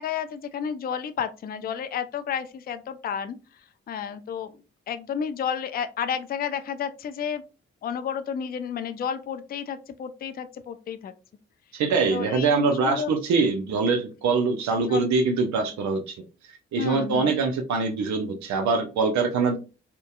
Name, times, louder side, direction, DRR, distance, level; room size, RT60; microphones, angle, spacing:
voice 1, 0.0-3.4 3.9-4.5 4.9-7.4 7.8-11.1 12.1-13.1 14.9-15.1 16.8-17.3, left 7 dB, 35° left, 10 dB, 0.4 m, -31 dB
voice 2, 11.7-16.2 16.7-19.6, right 4 dB, 70° right, 4 dB, 0.6 m, -24 dB
2.7 x 2.1 x 2.2 m, 0.32 s
hypercardioid pair, 40°, 29 cm